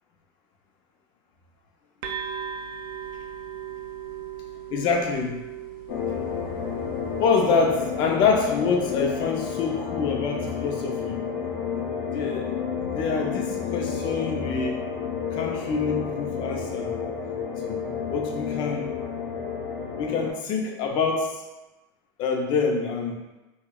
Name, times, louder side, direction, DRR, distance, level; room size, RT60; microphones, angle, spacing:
sound 1, 2.0-9.5, right 8 dB, 80° right, 0.4 m, -39 dB
voice 1, 4.7-5.4 7.2-11.2 12.1-12.4 12.9-14.8 15.3-17.0 17.6-17.8 18.1-18.9 20.0-21.4 22.2-23.2, left 5 dB, 40° left, 1 dB, 0.6 m, -26 dB
sound 2, 5.9-20.3, left 6 dB, 65° left, 0.9 m, -30 dB
4.6 x 2.3 x 2.3 m, 1.1 s
supercardioid pair, 160°, 12 cm